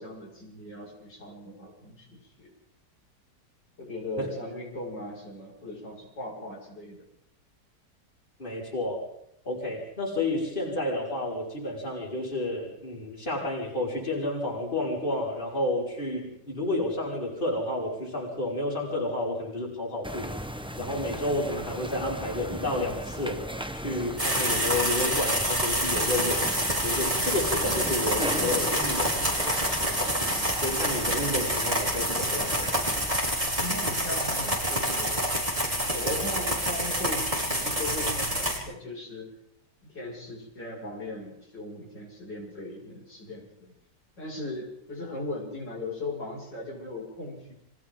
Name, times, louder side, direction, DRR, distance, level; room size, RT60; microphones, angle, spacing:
voice 1, 0.0-2.5 3.8-7.1 33.5-35.3 35.9-39.3 39.9-43.7 44.2-47.5, left 2 dB, 90° left, -2 dB, 6.8 m, -38 dB
voice 2, 8.4-9.0 9.4-20.3 20.8-23.4 23.7-26.5 26.8-29.3 29.7-30.2 30.6-32.7, left 1 dB, 30° left, -3 dB, 5.4 m, -31 dB
sound 1, 20.0-33.1, equal, 5° right, 0.7 m, -37 dB
sound 2, 24.2-38.6, equal, 25° right, 5.3 m, -27 dB
30.0 x 25.0 x 3.9 m, 0.76 s
omnidirectional pair, 1.8 m